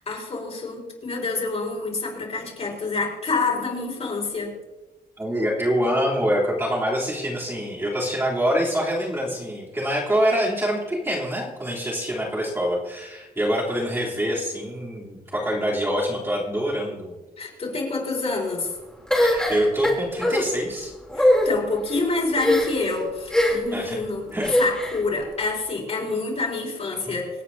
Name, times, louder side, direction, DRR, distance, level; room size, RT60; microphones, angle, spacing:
voice 1, 0.0-4.5 17.4-18.7 21.1-24.3 24.6-27.3, left 3 dB, 40° left, -3 dB, 4.9 m, -27 dB
voice 2, 5.2-17.1 19.2-20.9 23.7-24.0 24.3-24.5, equal, 15° right, -7 dB, 3.4 m, -25 dB
sound 1, 19.1-20.4 21.1-21.5 22.4-22.9 23.3-23.8 24.4-25.0, left 1 dB, 5° left, 3.3 m, -20 dB
27.0 x 9.4 x 2.8 m, 1.1 s
wide cardioid pair, 175°, 16 cm